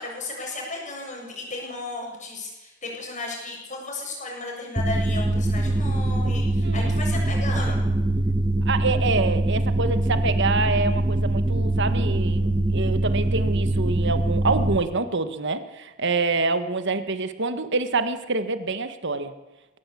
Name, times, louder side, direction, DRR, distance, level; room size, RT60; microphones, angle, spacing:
voice 1, 0.0-7.8, left 2 dB, 35° left, 0 dB, 7.4 m, -34 dB
sound 1, 4.8-14.8, right 1 dB, 20° right, 1.4 m, -23 dB
voice 2, 6.6-7.0 8.6-19.3, right 3 dB, 55° right, 10 dB, 1.6 m, -26 dB
21.0 x 18.0 x 8.6 m, 1.1 s
head